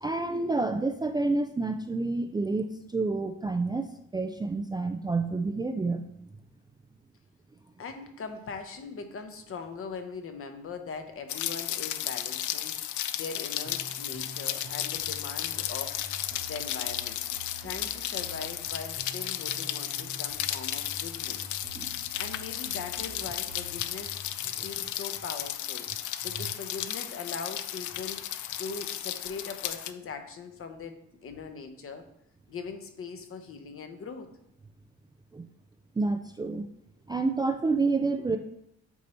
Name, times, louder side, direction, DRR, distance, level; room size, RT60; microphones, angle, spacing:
voice 1, 0.0-6.3 21.8-21.9 24.6-24.7 35.3-35.5 36.0-36.6 37.1-38.4, right 3 dB, 15° right, 6 dB, 0.3 m, -29 dB
voice 2, 7.8-12.9 13.1-16.0 16.5-17.2 17.6-21.5 22.2-24.2 24.6-25.9 26.2-28.3 28.6-32.1 32.5-34.3, left 5 dB, 45° left, 7 dB, 0.9 m, -40 dB
Rain, 11.3-29.9, left 12 dB, 75° left, 0.5 m, -34 dB
sound 1, 13.6-24.3, right 1 dB, 70° right, 1.1 m, -48 dB
8.3 x 2.8 x 4.3 m, 0.78 s
cardioid pair, 90°, 30 cm